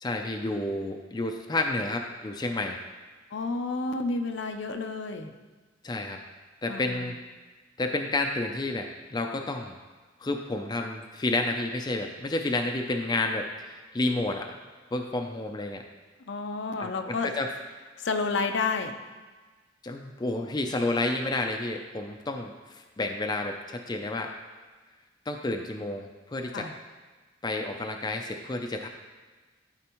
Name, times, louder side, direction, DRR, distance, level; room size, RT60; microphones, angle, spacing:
voice 1, 0.0-2.8 5.8-6.2 6.6-7.2 7.8-9.8 10.2-14.6 14.9-15.8 16.8-17.5 19.8-24.3 25.3-26.7 27.4-28.9, left 2 dB, 20° left, 3 dB, 0.4 m, -30 dB
voice 2, 3.3-5.3 6.7-7.1 16.2-17.3 18.0-18.9 26.5-26.7, left 3 dB, 70° left, 6 dB, 0.6 m, -30 dB
12.5 x 4.3 x 3.0 m, 1.4 s
head